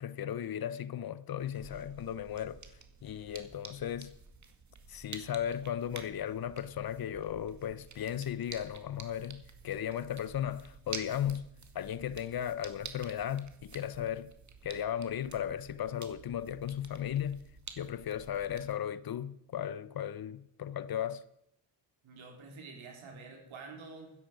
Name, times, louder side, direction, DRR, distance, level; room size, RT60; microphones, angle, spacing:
voice 1, 0.0-2.6 3.0-4.1 4.9-11.5 11.7-14.3 14.6-17.5 17.8-21.2, left 10 dB, 45° left, 0.9 m, -36 dB
sound 1, 1.4-18.7, right 5 dB, 35° right, 1.9 m, -50 dB
voice 2, 22.0-24.1, right 4 dB, 65° right, 4.1 m, -48 dB
13.5 x 10.0 x 5.1 m
supercardioid pair, 65°, 50 cm